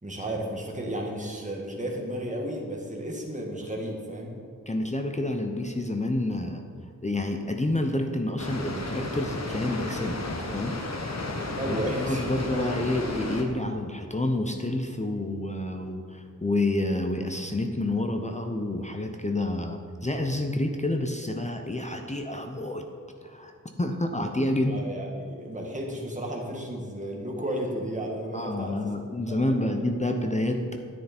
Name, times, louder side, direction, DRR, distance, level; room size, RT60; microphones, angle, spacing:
voice 1, 0.0-4.3 11.6-12.2 12.5-12.7 24.7-28.8 29.3-29.7, right 1 dB, 25° right, -1 dB, 1.7 m, -33 dB
voice 2, 4.7-6.6 7.0-10.8 11.0-11.2 11.6-22.9 23.2-23.5 23.8-24.8 28.3-30.8, left 1 dB, 20° left, 4 dB, 0.7 m, -29 dB
Water, 8.4-13.4, left 2 dB, 55° left, 1.2 m, -33 dB
10.0 x 9.3 x 4.4 m, 2.2 s
wide cardioid pair, 65°, 32 cm